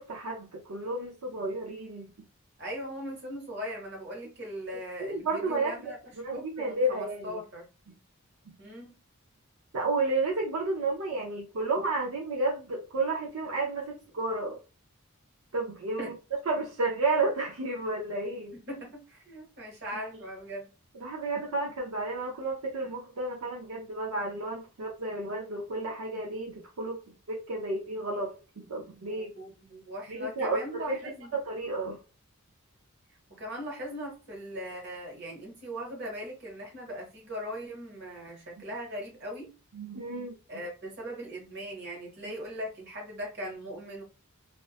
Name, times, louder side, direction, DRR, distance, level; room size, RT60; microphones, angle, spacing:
voice 1, 0.0-2.1 5.0-7.4 7.9-8.0 9.7-14.6 15.5-16.1 16.5-18.5 21.0-27.0 27.3-29.3 30.1-31.0 31.3-32.0 39.8-40.6, right 2 dB, 75° right, 0.5 m, -32 dB
voice 2, 2.6-6.0 6.3-7.7 8.6-9.0 16.0-16.1 18.5-20.7 29.1-31.3 33.4-39.6 40.5-44.0, equal, 50° right, 1.1 m, -39 dB
2.5 x 2.2 x 2.4 m
head